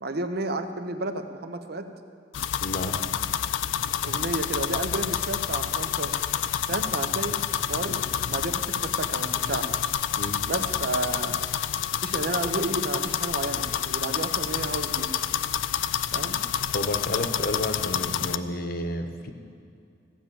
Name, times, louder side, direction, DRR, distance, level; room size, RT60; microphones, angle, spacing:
voice 1, 0.0-1.9 4.0-6.2 6.7-7.4 7.7-9.7 10.5-11.4 12.0-15.1 16.1-16.4, right 2 dB, 55° right, 8 dB, 0.8 m, -32 dB
sound 1, 2.3-18.4, left 9 dB, 85° left, 0.4 m, -28 dB
voice 2, 2.6-3.0 7.1-7.2 10.2-10.4 16.7-19.3, left 1 dB, 55° left, 7 dB, 1.1 m, -31 dB
15.5 x 8.7 x 7.0 m, 2.4 s
head